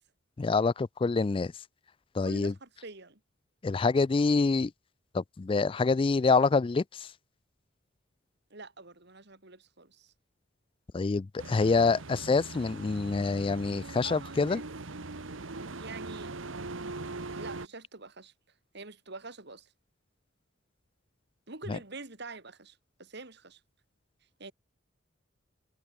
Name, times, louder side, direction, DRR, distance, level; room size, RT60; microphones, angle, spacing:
voice 1, 0.4-1.5 2.1-2.5 3.6-4.7 5.1-7.1 10.9-14.6 21.7-21.8, left 4 dB, 25° left, 0.3 m, -26 dB
voice 2, 2.2-3.2 8.5-10.1 14.0-14.6 15.6-16.3 17.4-18.3 18.7-19.7 21.5-23.6 24.4-24.5, right 3 dB, 60° right, 3.1 m, -46 dB
sound 1, 11.4-17.7, right 3 dB, 80° right, 1.5 m, -41 dB
head